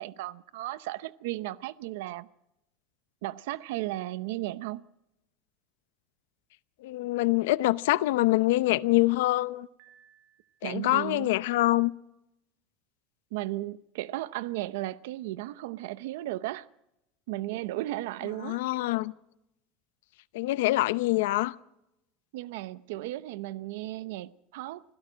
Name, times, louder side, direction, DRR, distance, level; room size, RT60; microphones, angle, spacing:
voice 1, 0.0-2.3 3.2-4.8 10.6-11.3 13.3-16.7 17.3-18.6 22.3-24.8, right 16 dB, 85° right, 0.7 m, -35 dB
voice 2, 6.8-9.7 10.6-11.9 18.4-19.1 20.3-21.6, left 18 dB, 90° left, 0.7 m, -25 dB
Piano, 9.8-11.1, right 10 dB, 65° right, 3.6 m, -62 dB
26.0 x 16.0 x 6.2 m
cardioid pair, 155°, 0 cm